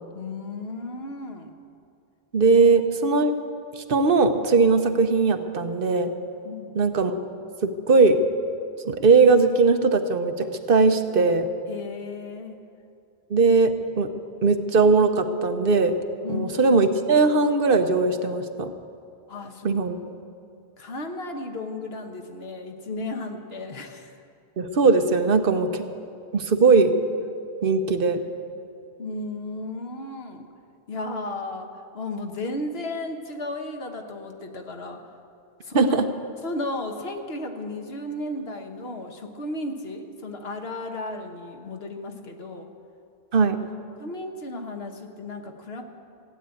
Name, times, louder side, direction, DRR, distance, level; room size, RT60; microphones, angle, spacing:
voice 1, 0.1-1.5 2.6-2.8 6.4-6.8 11.7-12.6 16.2-16.6 19.3-19.7 20.8-24.1 29.0-30.5 30.9-35.0 35.6-36.0 36.4-42.7 43.4-43.5 44.0-45.8, left 2 dB, 75° left, 4 dB, 1.4 m, -34 dB
voice 2, 2.3-3.3 3.8-6.1 6.7-7.1 7.6-8.2 8.8-11.5 13.3-14.1 14.4-15.9 16.3-18.7 19.6-20.0 24.6-25.8 26.3-26.9 27.6-28.2 35.7-36.1 43.3-43.6, right 4 dB, 65° right, 8 dB, 1.0 m, -19 dB
15.5 x 9.3 x 8.4 m, 2.4 s
omnidirectional pair, 1.0 m